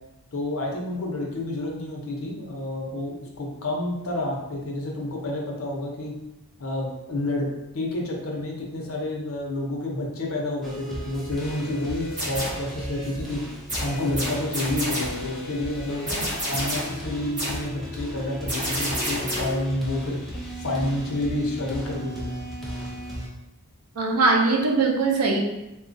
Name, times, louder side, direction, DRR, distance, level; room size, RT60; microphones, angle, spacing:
voice 1, 0.3-6.2 6.6-7.5 7.7-13.4 13.8-20.2 20.6-22.3, left 1 dB, 65° left, -1 dB, 0.7 m, -29 dB
sound 1, 10.6-23.3, equal, ahead, 0.4 m, -36 dB
sound 2, 12.1-12.7 13.7-15.3 16.1-17.0 17.4-17.7 18.5-19.6, equal, 35° right, 1.5 m, -30 dB
voice 2, 24.0-25.4, right 3 dB, 85° right, 1 dB, 0.6 m, -21 dB
3.8 x 2.3 x 2.6 m, 0.94 s
head